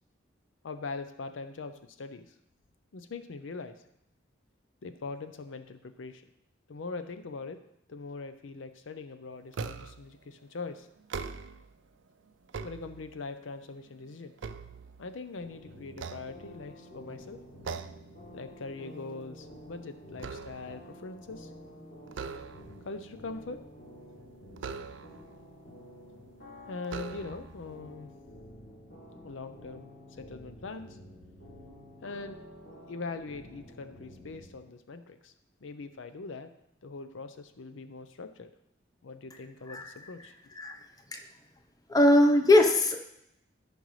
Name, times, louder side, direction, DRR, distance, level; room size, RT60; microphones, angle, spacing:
voice 1, 0.6-2.3 2.9-3.7 4.8-6.2 6.7-7.6 7.9-10.9 12.6-14.3 15.0-17.4 18.3-21.5 22.9-23.6 26.7-28.1 29.2-29.9 30.2-31.0 32.0-32.4 32.9-35.3 35.6-36.5 36.8-38.5 39.0-40.3, left 3 dB, 80° left, 9 dB, 0.6 m, -41 dB
sound 1, 9.5-10.1 11.0-11.8 12.3-13.4 13.9-15.4 15.9-16.9 17.6-18.1 18.5-18.8 19.2-20.9 22.1-22.9 24.6-25.3 26.1-26.2 26.8-27.6, right 5 dB, 70° right, 0.4 m, -41 dB
sound 2, 15.4-34.5, equal, 65° left, 3.2 m, -50 dB
voice 2, 41.9-43.0, left 1 dB, 20° left, 5 dB, 0.8 m, -21 dB
13.5 x 5.3 x 3.2 m, 0.80 s
head